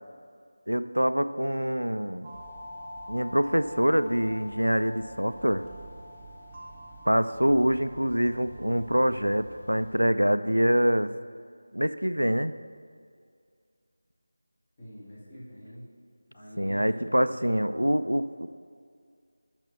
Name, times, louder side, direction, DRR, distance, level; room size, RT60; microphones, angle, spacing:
voice 1, 0.7-2.3 3.1-5.6 7.1-11.1 11.7-12.5 16.6-18.5, equal, 90° right, 12 dB, 0.3 m, -25 dB
sound 1, 2.2-10.0, equal, 10° right, 1.0 m, -45 dB
voice 2, 14.8-15.9 16.3-17.5, equal, 30° left, -8 dB, 2.4 m, -46 dB
6.1 x 6.1 x 6.8 m, 2.2 s
figure-of-eight pair, 165°, 0 cm